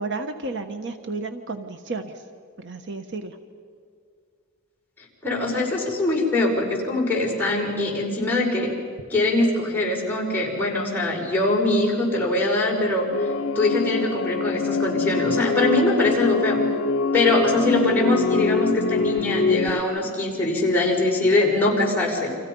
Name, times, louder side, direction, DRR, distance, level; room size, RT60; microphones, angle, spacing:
voice 1, 0.0-2.2 2.6-3.4, right 3 dB, 60° right, 7 dB, 1.3 m, -32 dB
voice 2, 5.2-8.7 9.1-13.1 13.6-16.6 17.1-22.3, left 2 dB, 10° left, -3 dB, 5.4 m, -22 dB
sound 1, 13.1-19.8, left 4 dB, 70° left, 0.8 m, -24 dB
30.0 x 26.0 x 5.5 m, 2.1 s
head